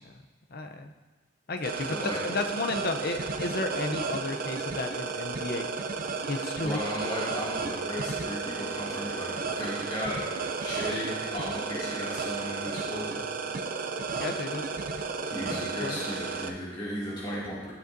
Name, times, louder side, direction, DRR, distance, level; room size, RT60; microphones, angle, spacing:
voice 1, 0.5-0.9 1.5-5.7 6.3-6.8 14.2-14.6 15.8-16.0, left 2 dB, 50° left, 5 dB, 0.6 m, -33 dB
sound 1, 1.6-16.5, right 4 dB, 45° right, 0.5 m, -33 dB
voice 2, 1.8-2.2 6.6-10.2 10.6-13.1 15.2-17.7, equal, 25° left, -9 dB, 2.3 m, -35 dB
13.0 x 7.5 x 2.6 m, 1.2 s
head